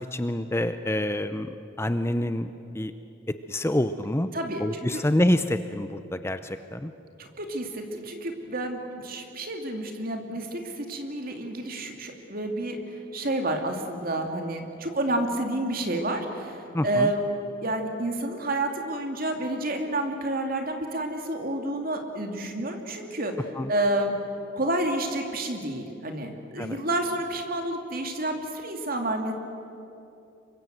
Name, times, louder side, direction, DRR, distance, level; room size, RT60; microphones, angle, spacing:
voice 1, 0.1-1.5 1.8-2.9 3.5-4.3 4.6-6.9 16.7-17.1 23.6-23.7 26.6-26.8, left 1 dB, 15° left, 10 dB, 0.6 m, -27 dB
voice 2, 4.3-5.0 7.2-24.1 24.6-29.3, right 1 dB, 50° right, 4 dB, 2.8 m, -30 dB
27.5 x 24.0 x 7.9 m, 2.8 s
head